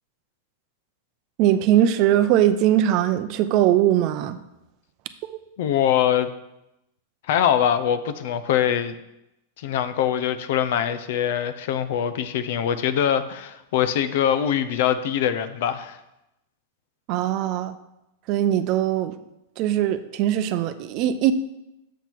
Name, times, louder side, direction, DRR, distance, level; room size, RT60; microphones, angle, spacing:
voice 1, 1.4-4.4 5.2-5.4 17.1-17.8 18.3-19.1 19.6-21.3, right 11 dB, 45° right, 12 dB, 0.5 m, -21 dB
voice 2, 5.6-6.3 7.3-8.9 9.6-16.0, left 9 dB, 65° left, 11 dB, 0.6 m, -23 dB
7.0 x 5.9 x 4.6 m, 0.90 s
supercardioid pair, 140°, 0 cm